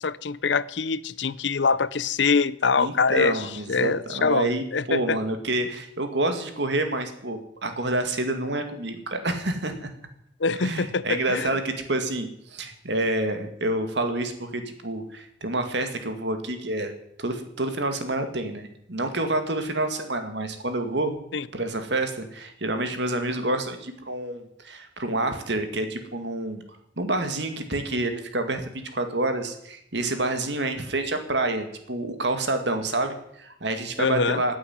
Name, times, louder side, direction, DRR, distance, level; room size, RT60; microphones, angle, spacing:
voice 1, 0.0-5.2 10.4-11.5 21.3-21.5 34.0-34.4, left 5 dB, 70° left, 18 dB, 0.7 m, -24 dB
voice 2, 2.8-9.9 10.6-16.9 17.2-21.1 21.5-26.6 27.0-34.6, right 2 dB, 65° right, 7 dB, 2.2 m, -28 dB
15.0 x 8.7 x 9.5 m, 0.74 s
head